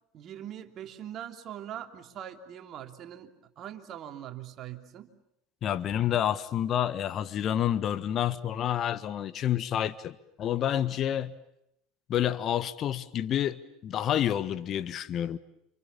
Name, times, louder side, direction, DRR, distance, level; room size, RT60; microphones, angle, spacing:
voice 1, 0.1-5.1, right 10 dB, 45° right, 6 dB, 3.2 m, -42 dB
voice 2, 5.6-11.3 12.1-15.4, left 10 dB, 45° left, 14 dB, 1.4 m, -29 dB
29.0 x 27.5 x 7.3 m, 0.78 s
hypercardioid pair, 80°, 0 cm